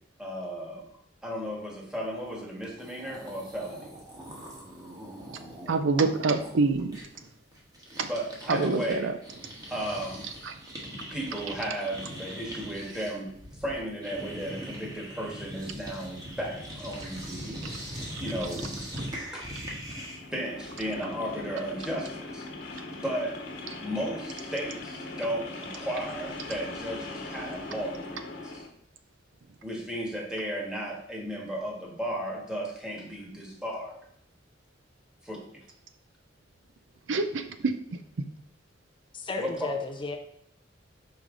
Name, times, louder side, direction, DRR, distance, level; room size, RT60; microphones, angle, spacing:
voice 1, 0.2-0.8 1.2-4.0 8.1-9.1 9.7-10.3 10.9-17.7 18.2-18.7 19.3-19.5 20.1-22.4 22.9-23.5 23.8-28.6 29.6-34.0 35.3-35.4 39.4-39.7, equal, 5° right, -2 dB, 1.5 m, -35 dB
sound 1, 2.5-2.6 2.7-9.0 9.2-20.3, equal, 20° right, 1.4 m, -41 dB
voice 2, 5.7-7.0 8.0-8.1 8.5-9.2 10.4-10.5 37.1-37.7, right 3 dB, 75° right, 9 dB, 0.5 m, -26 dB
sound 2, 19.8-28.7, left 2 dB, 60° left, 1.4 m, -40 dB
voice 3, 39.1-40.2, left 3 dB, 25° left, 4 dB, 0.5 m, -33 dB
5.4 x 4.8 x 3.7 m, 0.68 s
head